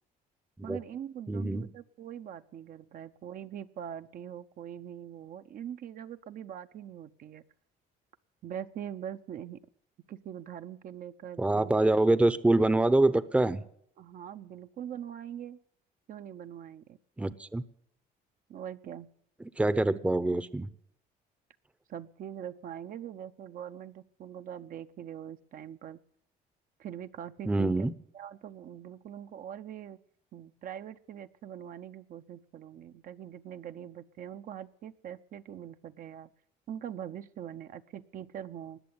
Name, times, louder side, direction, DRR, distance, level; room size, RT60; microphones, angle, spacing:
voice 1, 0.6-7.4 8.4-9.6 10.1-11.8 14.0-15.6 16.1-17.0 18.5-19.1 21.9-26.0 26.8-27.9 28.1-30.0 30.3-36.3 36.7-38.8, right 9 dB, 55° right, 10 dB, 0.7 m, -42 dB
voice 2, 1.3-1.6 11.4-13.6 17.2-17.6 19.4-20.7 27.5-27.9, right 2 dB, 5° right, 16 dB, 0.7 m, -25 dB
20.0 x 6.9 x 9.5 m, 0.69 s
cardioid pair, 110°, 17 cm